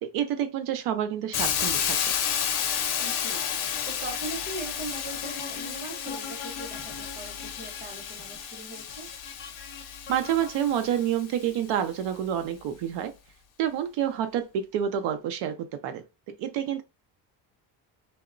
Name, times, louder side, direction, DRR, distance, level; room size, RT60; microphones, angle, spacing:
voice 1, 0.0-2.0 10.1-13.1 13.6-16.8, right 10 dB, 85° right, 0.5 m, -28 dB
Hiss, 1.3-11.2, left 8 dB, 70° left, 0.6 m, -31 dB
voice 2, 3.0-9.1, right 2 dB, 20° right, 0.8 m, -41 dB
sound 1, 4.7-11.1, left 4 dB, 30° left, 0.5 m, -43 dB
2.9 x 2.1 x 2.4 m
cardioid pair, 165°, 41 cm